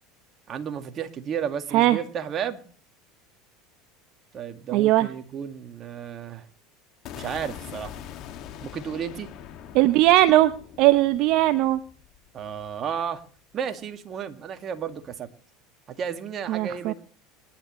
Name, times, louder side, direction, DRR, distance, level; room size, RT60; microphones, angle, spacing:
voice 1, 0.5-2.6 4.3-6.5 7.1-8.0 8.6-9.3 12.3-13.2 13.5-15.3 15.9-16.9, right 8 dB, 40° right, 7 dB, 1.9 m, -33 dB
voice 2, 4.7-5.1 9.7-10.5 10.8-11.8 16.5-16.9, right 16 dB, 60° right, 12 dB, 0.7 m, -19 dB
sound 1, 7.0-13.1, left 10 dB, 55° left, 2.0 m, -42 dB
25.5 x 11.0 x 3.1 m, 0.42 s
hypercardioid pair, 85°, 0 cm